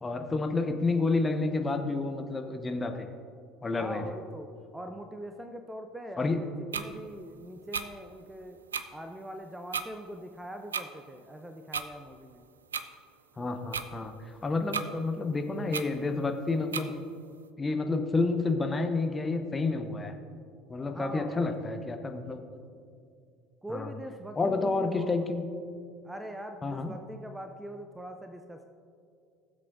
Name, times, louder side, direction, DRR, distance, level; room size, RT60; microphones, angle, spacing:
voice 1, 0.0-3.1 3.6-4.0 6.2-6.4 13.4-14.1 14.4-17.0 17.6-20.1 20.7-22.4 23.7-23.9 24.4-25.4 26.6-26.9, left 3 dB, 20° left, 6 dB, 0.8 m, -29 dB
voice 2, 3.7-8.6 8.9-12.5 20.9-21.6 23.6-25.1 26.0-28.7, equal, 5° right, 6 dB, 0.6 m, -42 dB
sound 1, 6.7-6.9 7.7-7.9 8.7-8.8 9.7-9.9 10.7-10.9 11.7-11.9 12.7-12.8 13.7-13.9 14.7-14.9 15.7-15.8 16.7-16.9, right 6 dB, 75° right, 0.4 m, -32 dB
16.5 x 7.6 x 2.6 m, 2.3 s
figure-of-eight pair, 65°, 0 cm